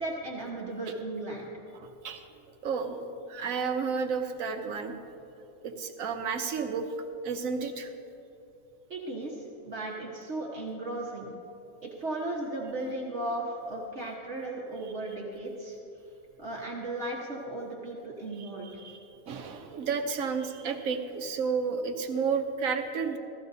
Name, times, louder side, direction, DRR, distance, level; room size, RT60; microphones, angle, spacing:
voice 1, 0.0-1.5 8.9-11.3 11.8-15.8 16.4-18.7, right 2 dB, 50° right, -4 dB, 1.6 m, -36 dB
voice 2, 1.7-2.3 2.6-5.0 5.6-6.9 7.2-7.9 14.8-14.9 18.4-19.0 19.3-23.2, right 5 dB, 70° right, 5 dB, 1.2 m, -32 dB
16.5 x 13.5 x 2.7 m, 2.8 s
omnidirectional pair, 1.5 m